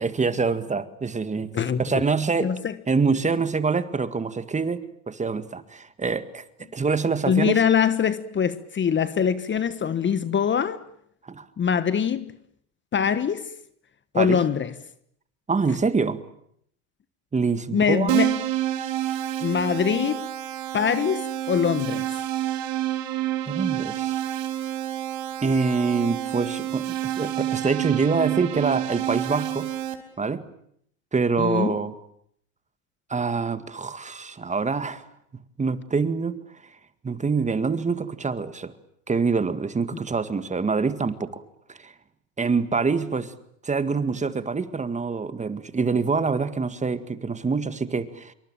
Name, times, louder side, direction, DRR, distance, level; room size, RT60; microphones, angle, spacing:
voice 1, 0.0-1.5 1.8-2.5 2.9-6.4 6.7-7.6 11.3-11.5 14.1-14.4 15.5-16.2 17.3-18.2 23.5-24.1 25.4-29.7 30.2-30.5 31.1-31.9 33.1-35.1 35.6-36.4 37.0-38.7 39.1-41.4 41.8-41.9 42.4-43.3 43.6-48.3, right 4 dB, 15° right, 1.9 m, -25 dB
voice 2, 1.5-2.0 2.4-2.8 7.3-10.8 11.6-12.3 12.9-13.5 14.1-14.8 17.7-18.4 19.4-20.3 20.7-22.1 31.4-31.8, left 7 dB, 30° left, 1.3 m, -23 dB
Keyboard (musical), 18.1-29.9, right 13 dB, 65° right, 4.5 m, -28 dB
26.5 x 23.5 x 9.0 m
supercardioid pair, 105°, 40 cm